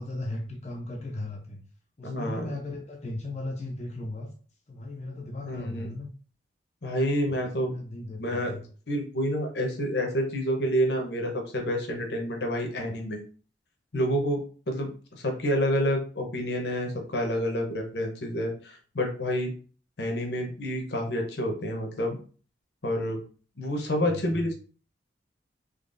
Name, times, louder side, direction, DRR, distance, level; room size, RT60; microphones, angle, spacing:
voice 1, 0.0-1.6 2.0-4.3 4.7-6.1 7.4-8.6 24.0-24.5, left 2 dB, 35° left, 0 dB, 0.5 m, -37 dB
voice 2, 2.0-2.5 5.4-5.9 6.8-8.6 8.9-13.2 13.9-19.5 20.0-22.2 22.8-23.2 23.6-24.5, equal, 65° left, 2 dB, 0.8 m, -28 dB
3.9 x 2.9 x 2.5 m, 0.40 s
head